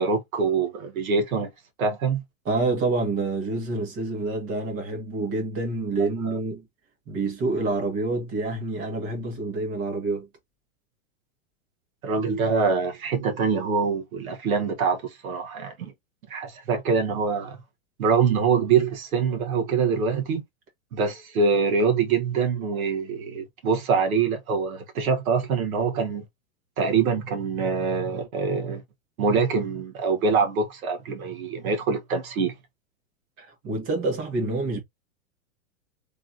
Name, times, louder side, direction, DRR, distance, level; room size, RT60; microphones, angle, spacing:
voice 1, 0.0-1.5 1.8-2.2 6.2-6.4 12.0-15.9 16.3-17.6 18.0-20.4 20.9-26.2 26.8-28.8 29.2-32.5, right 5 dB, 85° right, 1.4 m, -24 dB
voice 2, 2.5-6.7 7.1-10.3 33.4-34.8, right 3 dB, 35° right, 2.0 m, -27 dB
3.9 x 3.4 x 2.8 m
supercardioid pair, 140°, 41 cm